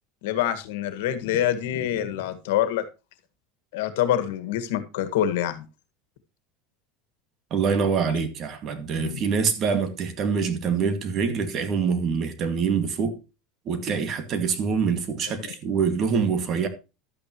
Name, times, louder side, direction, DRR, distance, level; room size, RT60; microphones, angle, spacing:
voice 1, 0.2-2.9 3.7-5.7 9.0-9.2 15.4-15.6, left 11 dB, 80° left, 1.7 m, -26 dB
voice 2, 7.5-13.2 13.7-16.7, right 6 dB, 40° right, 2.1 m, -25 dB
12.0 x 8.9 x 3.1 m
supercardioid pair, 140°, 0 cm